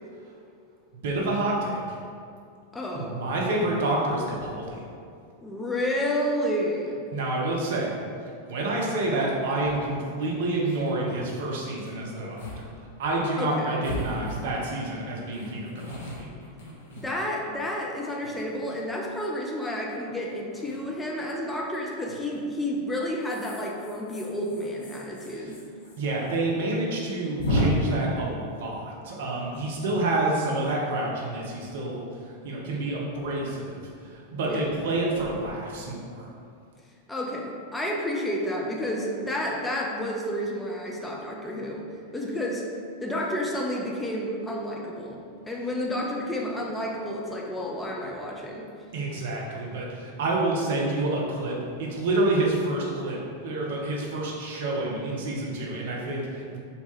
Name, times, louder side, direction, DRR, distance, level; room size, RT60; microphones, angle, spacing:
voice 1, 1.0-2.0 2.9-4.8 7.1-8.0 8.4-12.7 13.0-16.3 25.4-25.5 26.0-36.3 48.9-56.6, right 2 dB, 55° right, -2 dB, 0.5 m, -28 dB
voice 2, 2.7-3.2 5.4-7.1 13.4-13.7 17.0-25.6 34.5-34.6 37.1-41.9 42.1-42.6 43.0-48.7, left 1 dB, 10° left, -2 dB, 0.3 m, -30 dB
sound 1, 9.6-9.7 10.2-10.3 10.5-10.9 11.8-11.9 12.4-12.6 12.9-13.0 13.8-14.8 15.3-17.5 18.1-18.9 20.5-20.8 22.1-22.4 23.2-26.0 26.2-26.3 26.6-26.7 27.4-27.6, left 1 dB, 60° left, 0.6 m, -34 dB
2.9 x 2.2 x 3.0 m, 2.3 s
figure-of-eight pair, 90°, 0 cm